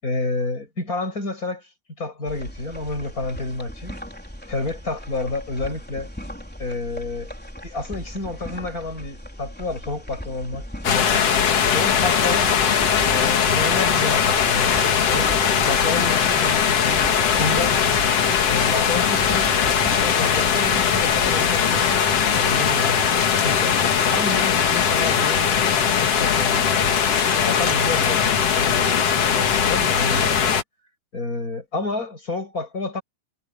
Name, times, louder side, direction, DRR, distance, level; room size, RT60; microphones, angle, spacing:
voice 1, 0.0-1.7 2.0-4.0 4.5-6.1 6.6-7.3 7.6-11.2 11.7-12.6 13.0-15.4 15.6-17.1 17.3-17.8 18.5-19.6 20.0-23.1 23.4-23.8 24.1-25.7 26.0-26.8 27.4-30.6 31.1-33.0, left 2 dB, 20° left, 8.1 m, -30 dB
sound 1, 2.3-21.4, equal, 5° left, 3.5 m, -38 dB
sound 2, 10.8-30.6, left 7 dB, 50° left, 2.4 m, -20 dB
omnidirectional pair, 4.0 m